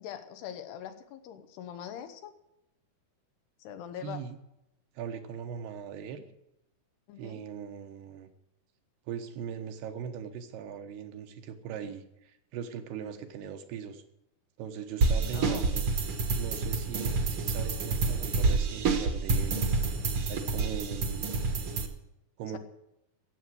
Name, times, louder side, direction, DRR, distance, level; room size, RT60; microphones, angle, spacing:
voice 1, 0.0-2.3 3.6-4.2 7.1-7.4 15.3-15.7, left 9 dB, 90° left, 8 dB, 3.3 m, -42 dB
voice 2, 4.0-4.4 5.0-6.2 7.2-8.3 9.1-14.0 14.6-15.9 16.4-19.6 20.3-21.3 22.4-22.6, right 8 dB, 85° right, 7 dB, 3.2 m, -40 dB
sound 1, 15.0-21.9, right 3 dB, 60° right, 1.5 m, -28 dB
16.0 x 7.8 x 7.9 m, 0.85 s
omnidirectional pair, 4.6 m